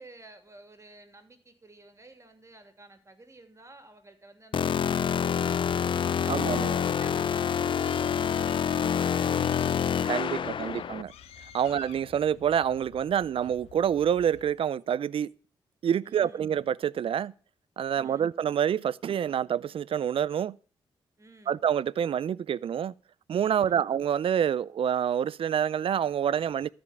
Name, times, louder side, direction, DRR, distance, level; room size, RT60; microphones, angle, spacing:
voice 1, 0.0-5.7 6.2-10.8 16.0-16.5 17.9-18.3 21.2-21.6 23.5-24.0, right 2 dB, 30° right, 2.8 m, -53 dB
sound 1, 4.5-11.0, left 8 dB, 55° left, 0.5 m, -27 dB
Bird, 5.6-14.5, left 9 dB, 90° left, 0.9 m, -50 dB
voice 2, 6.3-6.8 10.0-11.1 11.5-15.3 15.8-17.3 17.8-20.6 21.5-22.9 23.3-26.7, right 9 dB, 65° right, 0.5 m, -27 dB
13.5 x 5.1 x 8.2 m
supercardioid pair, 55°, 10 cm